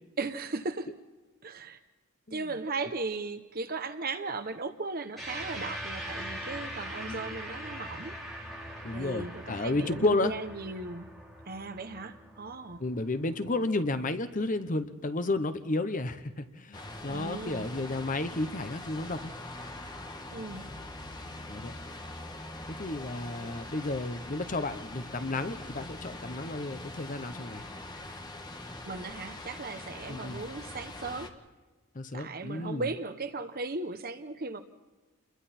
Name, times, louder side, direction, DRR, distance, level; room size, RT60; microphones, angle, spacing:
voice 1, 0.2-0.9 1.4-1.8 2.3-8.1 8.9-11.1 11.5-12.8 17.1-17.7 20.3-20.6 23.4-23.5 28.8-31.3 32.1-34.6, right 3 dB, 45° right, 9 dB, 0.9 m, -37 dB
sound 1, 5.2-13.8, equal, ahead, 5.2 m, -42 dB
voice 2, 8.8-10.3 12.8-19.3 21.5-21.7 22.8-27.6 30.1-30.4 31.9-32.9, left 2 dB, 35° left, 10 dB, 0.9 m, -32 dB
sound 2, 16.7-31.3, left 2 dB, 20° left, 1.5 m, -43 dB
29.0 x 22.0 x 4.3 m, 1.2 s
head